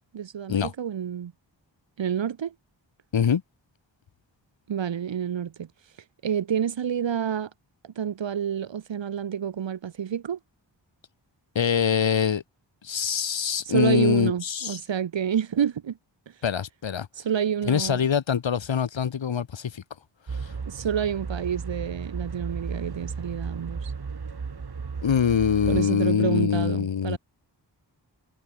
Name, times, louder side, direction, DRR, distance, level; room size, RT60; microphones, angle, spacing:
voice 1, 0.1-1.3 2.0-2.5 4.7-5.7 6.2-7.5 7.8-10.4 13.6-16.0 17.2-18.1 20.7-23.9 25.7-27.2, right 8 dB, 80° right, 1.2 m, -28 dB
voice 2, 11.6-12.4 12.8-14.8 16.4-17.1 17.7-19.8 25.0-27.2, left 7 dB, 90° left, 1.8 m, -24 dB
sound 1, 20.3-25.8, right 5 dB, 60° right, 3.8 m, -34 dB
wide cardioid pair, 85°, 44 cm